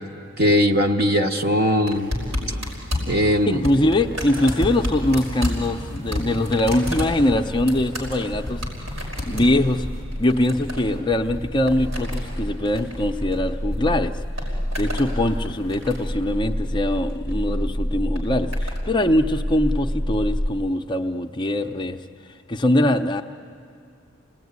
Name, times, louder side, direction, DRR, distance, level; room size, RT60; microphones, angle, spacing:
voice 1, 0.4-2.1 3.1-3.6, equal, 50° right, 3 dB, 1.3 m, -19 dB
sound 1, 1.9-13.8 14.1-15.1 15.5-16.2 17.1-17.4 18.2-18.8 19.7-19.8, left 1 dB, 85° right, 5.5 m, -31 dB
voice 2, 3.5-8.6 9.3-9.9 10.2-14.1 14.8-22.0 22.5-23.2, left 1 dB, 20° left, 4 dB, 0.5 m, -22 dB
sound 2, 8.9-20.5, equal, 10° right, 0.8 m, -29 dB
29.0 x 19.0 x 9.5 m, 2.5 s
head